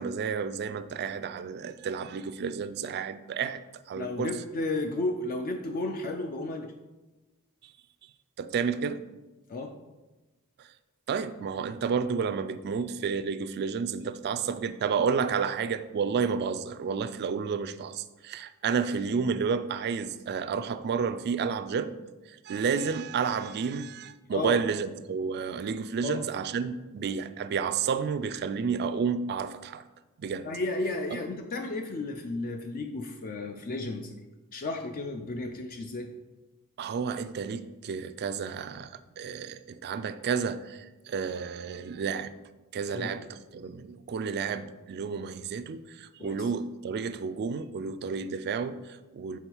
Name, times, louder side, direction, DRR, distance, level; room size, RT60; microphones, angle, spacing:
voice 1, 0.0-3.6 3.9-4.4 8.4-9.0 10.6-10.7 11.1-22.0 22.3-29.8 30.2-30.5 31.1-31.2 36.8-42.3 42.7-49.4, right 6 dB, 45° right, 0.3 m, -31 dB
voice 2, 3.9-6.7 9.5-9.7 24.3-24.6 26.0-26.2 30.4-34.2 34.5-36.1 42.9-43.1 46.2-46.5, left 2 dB, 40° left, 0.4 m, -33 dB
7.0 x 3.7 x 4.5 m
head